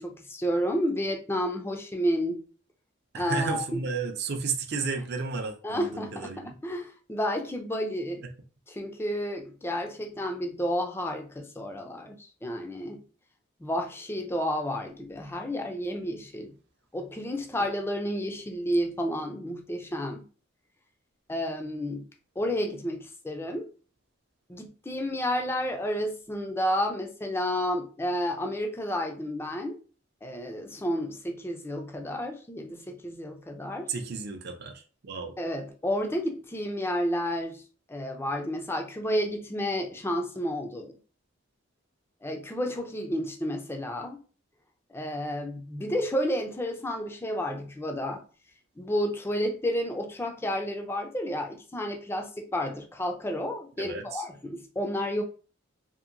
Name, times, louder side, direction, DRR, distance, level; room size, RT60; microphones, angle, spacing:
voice 1, 0.0-2.4 3.1-3.8 5.6-8.2 8.7-13.0 13.6-16.5 16.9-20.3 21.3-22.1 22.4-23.7 24.5-29.8 30.2-33.9 35.4-37.6 37.9-41.0 42.2-44.2 44.9-48.2 48.8-55.2, equal, 10° left, 4 dB, 0.4 m, -31 dB
voice 2, 3.1-6.5 33.9-35.3 53.8-54.2, right 4 dB, 50° right, 4 dB, 0.4 m, -33 dB
2.8 x 2.5 x 2.5 m, 0.38 s
head